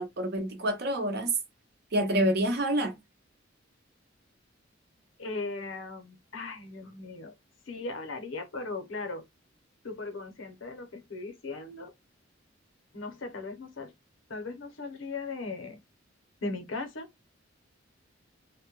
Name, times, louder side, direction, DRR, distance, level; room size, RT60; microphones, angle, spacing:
voice 1, 0.0-1.3 1.9-3.0, right 1 dB, 55° right, 0.7 m, -27 dB
voice 2, 5.2-7.3 7.7-9.2 9.8-11.9 12.9-13.9 14.3-15.8 16.4-17.1, left 3 dB, 75° left, 0.8 m, -38 dB
2.2 x 2.1 x 3.0 m
head